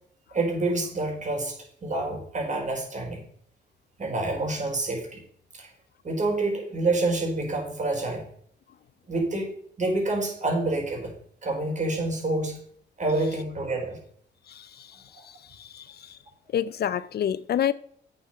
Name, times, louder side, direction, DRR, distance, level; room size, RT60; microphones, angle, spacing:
voice 1, 0.3-3.2 4.0-5.2 5.5-5.7 6.0-8.2 9.1-11.1 11.4-12.6 13.0-14.0 15.1-15.2, right 2 dB, 40° right, 5.2 m, -28 dB
voice 2, 14.5-16.2 16.5-17.7, left 10 dB, 55° left, 0.6 m, -29 dB
8.5 x 7.9 x 5.8 m
cardioid pair, 90°, 20 cm